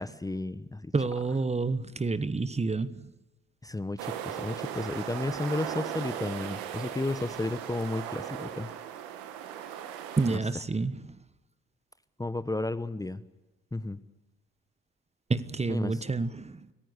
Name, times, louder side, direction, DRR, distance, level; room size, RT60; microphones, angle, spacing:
voice 1, 0.0-0.9 3.6-8.7 10.3-10.4 12.2-13.2 13.7-14.0 15.7-16.0, left 2 dB, 10° left, 1.1 m, -33 dB
voice 2, 0.9-3.1 10.2-11.2 15.3-16.7, right 3 dB, 20° right, 1.2 m, -29 dB
sound 1, 4.0-10.4, right 10 dB, 75° right, 2.2 m, -38 dB
25.5 x 15.5 x 8.1 m
hypercardioid pair, 55°, 33 cm